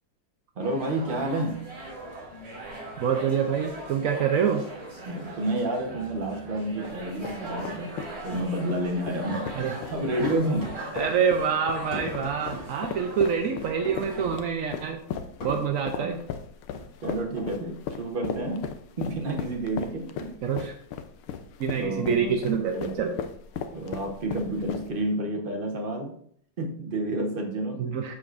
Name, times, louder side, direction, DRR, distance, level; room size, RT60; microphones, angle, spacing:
voice 1, 0.6-1.8 5.0-10.7 16.0-16.3 17.0-18.7 19.0-20.3 21.8-22.3 22.7-22.9 23.7-26.1 26.6-27.9, right 1 dB, 35° right, 2 dB, 1.0 m, -30 dB
sound 1, 0.6-14.3, right 1 dB, 55° right, 3.4 m, -40 dB
voice 2, 3.0-4.6 8.3-8.4 9.5-9.7 10.9-15.0 15.4-16.2 20.4-20.8 21.6-23.2 27.8-28.1, right 7 dB, 80° right, 4 dB, 0.7 m, -26 dB
sound 2, 6.8-25.1, left 7 dB, 90° left, 1.6 m, -37 dB
sound 3, 10.3-11.1 11.9-12.7 13.8-14.3 15.4-15.6 16.7-17.5, equal, 75° left, 2.8 m, -37 dB
13.0 x 5.1 x 2.5 m, 0.63 s
omnidirectional pair, 2.3 m